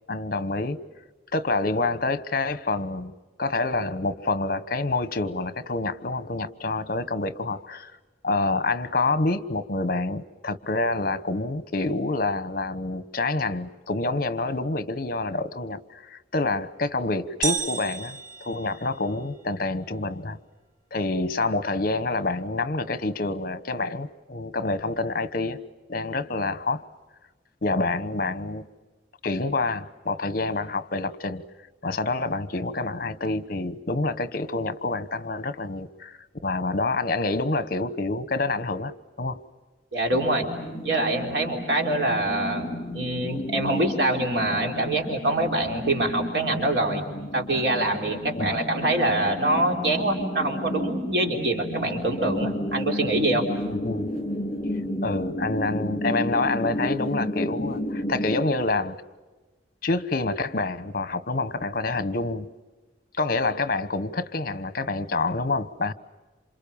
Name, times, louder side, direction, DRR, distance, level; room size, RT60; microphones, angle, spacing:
voice 1, 0.1-0.8 1.3-3.1 3.4-7.9 8.2-20.4 20.9-25.6 25.9-26.8 27.6-28.7 29.2-31.4 31.8-39.4 48.3-48.6 53.8-54.1 55.0-59.0 59.8-62.5 63.2-65.9, left 3 dB, 55° left, 1.2 m, -27 dB
sound 1, 17.4-19.4, right 5 dB, 45° right, 1.3 m, -32 dB
voice 2, 39.9-40.5 40.8-47.0 47.3-53.4, right 2 dB, 75° right, 3.6 m, -25 dB
sound 2, 40.1-58.4, left 1 dB, 35° left, 4.0 m, -32 dB
28.0 x 27.0 x 7.1 m
head